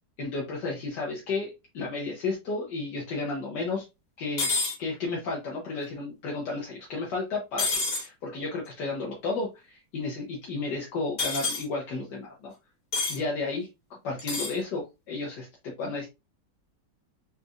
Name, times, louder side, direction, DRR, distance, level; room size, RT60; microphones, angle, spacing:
voice 1, 0.2-3.9 4.2-4.5 4.8-12.5 13.1-16.1, left 3 dB, 75° left, -2 dB, 1.6 m, -33 dB
sound 1, 4.4-4.8 7.6-8.1 11.2-11.6 12.9-13.2 14.2-14.6, left 3 dB, 50° left, 2.0 m, -28 dB
4.2 x 4.1 x 2.4 m, 0.24 s
omnidirectional pair, 1.9 m